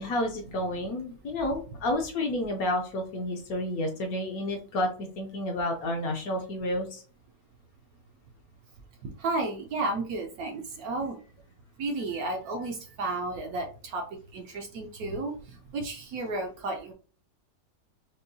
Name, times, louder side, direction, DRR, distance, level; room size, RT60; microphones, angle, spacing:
voice 1, 0.0-7.0, left 1 dB, 65° left, 3 dB, 1.0 m, -30 dB
voice 2, 9.2-11.2 11.8-13.6 13.9-14.0 14.3-15.3 15.7-16.9, right 2 dB, 65° right, 4 dB, 1.0 m, -32 dB
5.2 x 2.2 x 2.7 m, 0.40 s
omnidirectional pair, 1.9 m